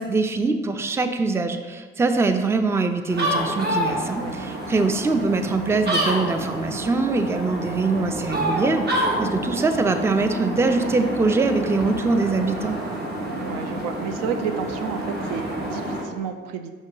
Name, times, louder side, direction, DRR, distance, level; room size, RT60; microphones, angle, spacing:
voice 1, 0.0-12.8, right 3 dB, 10° right, 7 dB, 0.4 m, -23 dB
sound 1, 3.1-16.0, right 1 dB, 35° right, 1.5 m, -28 dB
voice 2, 13.4-16.7, right 6 dB, 65° right, 7 dB, 0.5 m, -31 dB
5.3 x 5.0 x 3.8 m, 1.4 s
figure-of-eight pair, 45°, 29 cm